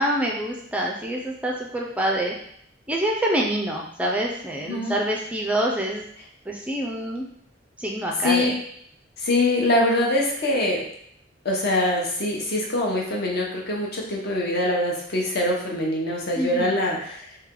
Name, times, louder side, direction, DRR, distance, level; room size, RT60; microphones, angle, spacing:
voice 1, 0.0-2.4 2.9-6.0 6.5-7.3 7.8-8.5 16.4-16.8, right 1 dB, 5° right, -1 dB, 0.4 m, -26 dB
voice 2, 4.7-5.0 8.2-8.5 9.2-10.8 11.4-17.2, left 1 dB, 55° left, -1 dB, 0.9 m, -23 dB
3.3 x 2.8 x 3.7 m, 0.67 s
head